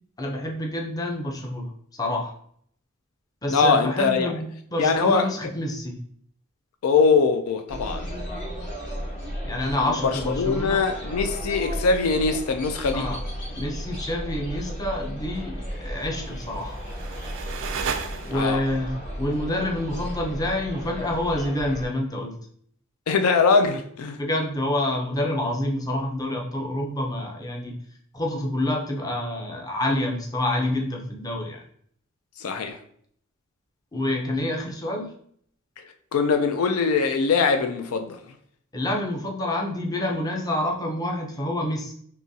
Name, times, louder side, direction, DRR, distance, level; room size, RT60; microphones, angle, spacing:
voice 1, 0.2-1.7 2.0-2.3 3.4-6.0 9.4-10.8 12.9-13.2 13.6-16.8 18.2-18.9 19.2-22.3 24.2-27.8 28.1-31.6 33.9-35.1 38.7-41.9, left 1 dB, 15° left, 0.5 m, -27 dB
voice 2, 3.5-4.3 4.8-5.3 6.8-8.1 9.9-13.0 18.3-18.6 23.1-24.2 32.4-32.8 36.1-38.2, left 4 dB, 75° left, 0.4 m, -22 dB
sound 1, 7.7-21.9, equal, 55° left, 1.3 m, -34 dB
sound 2, 16.4-18.7, right 6 dB, 60° right, 0.4 m, -34 dB
3.8 x 2.9 x 2.7 m
head